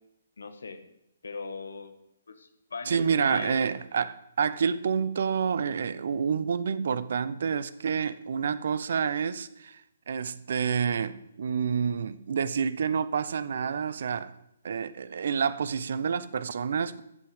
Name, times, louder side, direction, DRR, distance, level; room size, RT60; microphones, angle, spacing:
voice 1, 0.4-0.8 1.2-2.0 2.3-3.0 3.2-3.6, left 4 dB, 75° left, 1.8 m, -39 dB
voice 2, 2.9-14.3 14.6-17.0, right 6 dB, 60° right, 0.8 m, -28 dB
14.5 x 5.8 x 8.0 m
figure-of-eight pair, 140°, 0 cm